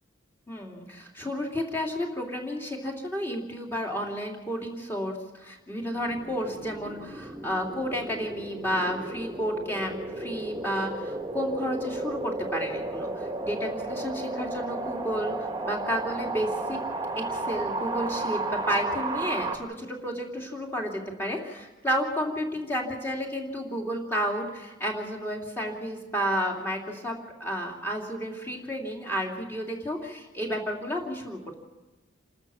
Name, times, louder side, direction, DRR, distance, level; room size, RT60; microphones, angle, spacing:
voice 1, 0.5-16.8 17.2-31.4, equal, 10° left, -1 dB, 2.9 m, -31 dB
sound 1, 5.9-19.6, right 2 dB, 20° right, 1.6 m, -33 dB
28.0 x 13.5 x 7.0 m, 1.2 s
head